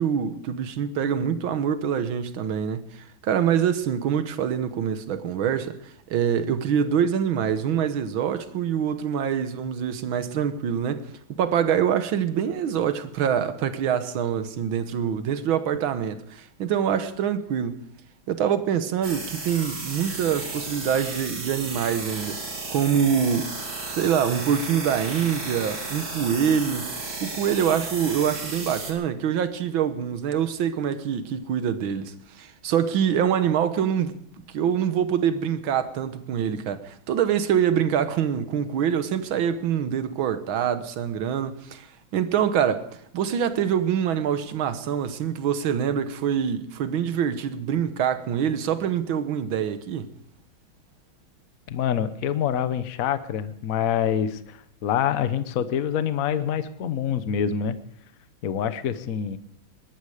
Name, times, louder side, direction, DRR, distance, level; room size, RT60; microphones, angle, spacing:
voice 1, 0.0-17.8 18.3-22.4 22.7-23.5 23.9-26.9 27.2-34.2 34.5-41.9 42.1-42.9 43.1-50.1, right 8 dB, 75° right, 1.9 m, -25 dB
sound 1, 19.0-28.9, right 3 dB, 45° right, 2.7 m, -34 dB
voice 2, 51.7-57.8 58.4-59.4, left 8 dB, 55° left, 1.1 m, -26 dB
20.5 x 12.0 x 4.9 m
omnidirectional pair, 2.3 m